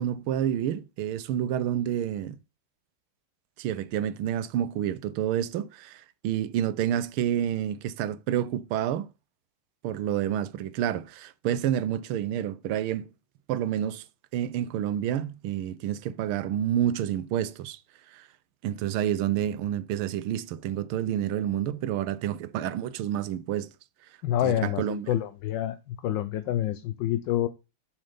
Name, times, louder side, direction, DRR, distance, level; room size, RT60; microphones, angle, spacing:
voice 1, 0.0-2.4 3.6-9.1 9.8-13.1 13.5-14.0 14.3-17.8 18.1-18.3 18.6-23.7 24.4-25.1, right 10 dB, 80° right, 1.5 m, -29 dB
voice 2, 24.2-27.5, left 12 dB, 70° left, 1.2 m, -28 dB
7.1 x 6.5 x 5.1 m
omnidirectional pair, 2.4 m